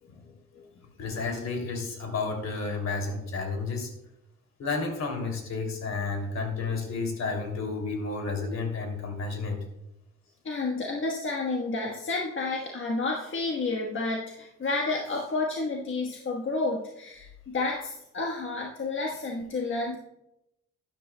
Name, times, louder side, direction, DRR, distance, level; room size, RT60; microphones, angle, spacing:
voice 1, 1.0-3.9 4.6-9.6, left 4 dB, 60° left, 3 dB, 2.8 m, -31 dB
voice 2, 10.4-20.0, left 3 dB, 40° left, -1 dB, 1.3 m, -30 dB
12.5 x 10.5 x 2.2 m, 0.86 s
cardioid pair, 90°, 30 cm